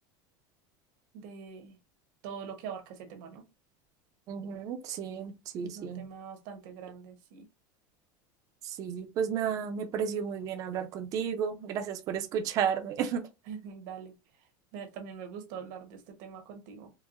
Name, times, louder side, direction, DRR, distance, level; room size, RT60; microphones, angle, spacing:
voice 1, 1.1-1.8 2.2-3.4 5.6-7.4 13.5-14.1 14.7-16.9, right 7 dB, 65° right, 1.0 m, -43 dB
voice 2, 4.3-6.1 8.6-13.2, right 7 dB, 35° right, 0.5 m, -32 dB
4.6 x 2.1 x 2.4 m
supercardioid pair, 160°, 11 cm